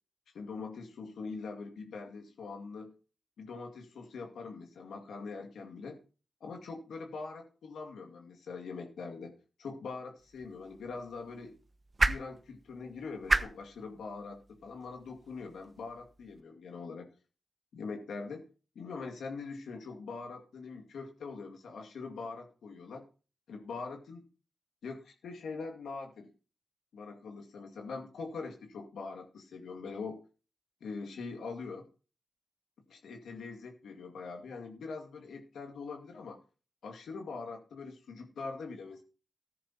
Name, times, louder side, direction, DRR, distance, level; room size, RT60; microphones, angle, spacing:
voice 1, 0.3-2.9 3.4-6.0 6.4-11.5 12.1-17.1 17.7-18.4 18.8-23.0 23.5-24.3 24.8-26.3 26.9-30.2 30.8-31.8 32.9-36.4 36.8-39.0, left 4 dB, 85° left, 3 dB, 2.2 m, -43 dB
sound 1, 10.2-16.4, right 3 dB, 45° right, 1.0 m, -36 dB
14.0 x 10.0 x 2.9 m, 0.35 s
supercardioid pair, 40°, 0 cm